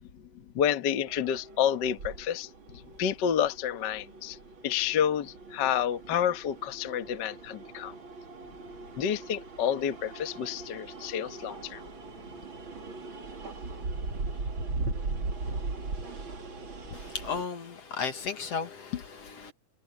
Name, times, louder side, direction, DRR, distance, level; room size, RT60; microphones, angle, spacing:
voice 1, 0.0-4.4 4.6-7.9 9.0-11.8, left 9 dB, 70° left, 1.0 m, -29 dB
sound 1, 1.1-17.5, right 3 dB, 35° right, 3.3 m, -39 dB
voice 2, 16.9-19.5, left 6 dB, 50° left, 2.3 m, -35 dB
omnidirectional pair, 4.1 m